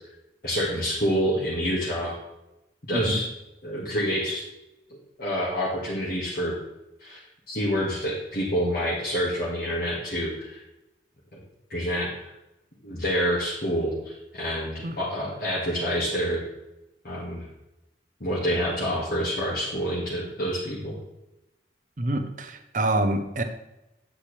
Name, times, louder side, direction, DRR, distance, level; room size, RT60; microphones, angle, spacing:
voice 1, 0.4-2.1 2.9-3.3 3.6-4.4 5.2-6.5 7.0-7.2 7.5-10.6 11.7-12.1 12.8-16.4 17.0-17.5 18.2-21.0, equal, 55° left, -7 dB, 1.9 m, -27 dB
voice 2, 2.9-3.2 14.8-15.0 22.0-23.4, right 1 dB, 45° right, 8 dB, 0.8 m, -26 dB
8.5 x 8.5 x 3.3 m, 0.93 s
head